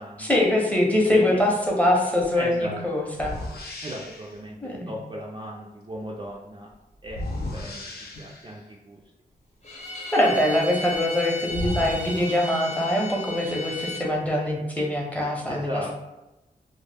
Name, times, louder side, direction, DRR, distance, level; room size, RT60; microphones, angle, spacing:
voice 1, 0.2-3.4 4.6-5.0 10.1-15.8, left 1 dB, 10° left, -2 dB, 0.7 m, -23 dB
sound 1, 2.2-2.4 3.1-4.4 7.0-8.6 10.9-11.0 11.5-13.1, left 1 dB, 80° left, 0.4 m, -35 dB
voice 2, 2.4-2.8 3.8-6.7 7.0-7.8 8.2-9.0 15.5-15.9, equal, 30° right, -2 dB, 0.4 m, -36 dB
Bowed string instrument, 9.6-14.1, left 1 dB, 45° left, 0.8 m, -35 dB
2.1 x 2.0 x 3.3 m, 0.95 s
cardioid pair, 55°, 16 cm